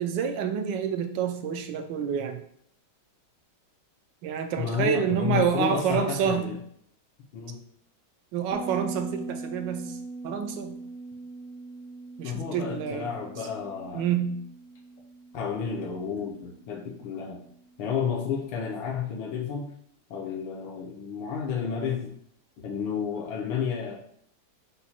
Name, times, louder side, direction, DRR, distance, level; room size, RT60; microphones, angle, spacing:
voice 1, 0.0-2.4 4.2-6.6 8.3-10.0 10.2-10.8 12.2-13.1 13.9-14.4, right 7 dB, 75° right, 6 dB, 1.1 m, -28 dB
voice 2, 4.6-6.6 7.3-7.6 12.2-14.1 15.3-17.4 17.8-19.7 20.1-22.2 22.6-23.9, left 7 dB, 75° left, -2 dB, 1.5 m, -31 dB
Bass guitar, 8.5-17.9, right 3 dB, 35° left, 0.5 m, -42 dB
5.8 x 2.2 x 4.2 m, 0.68 s
omnidirectional pair, 2.2 m